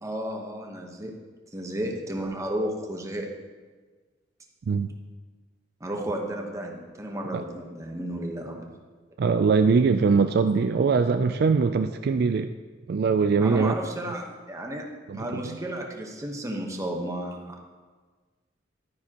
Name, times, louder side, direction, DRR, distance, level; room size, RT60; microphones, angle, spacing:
voice 1, 0.0-1.1 1.5-3.3 5.8-8.7 13.4-14.8 15.1-17.6, right 1 dB, 15° right, 1 dB, 1.1 m, -33 dB
voice 2, 9.2-12.5 12.9-13.7 15.1-15.6, right 5 dB, 55° right, 8 dB, 0.3 m, -22 dB
12.0 x 9.5 x 2.9 m, 1.4 s
head